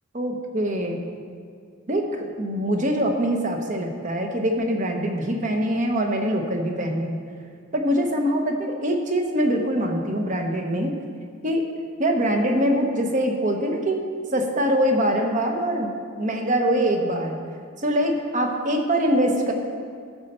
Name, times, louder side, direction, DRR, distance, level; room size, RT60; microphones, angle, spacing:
voice 1, 0.1-1.0 1.9-7.2 7.7-10.9 11.4-11.6 12.0-14.0 14.3-17.4 17.8-19.5, equal, 40° right, 3 dB, 1.0 m, -23 dB
12.5 x 4.3 x 6.7 m, 2.2 s
head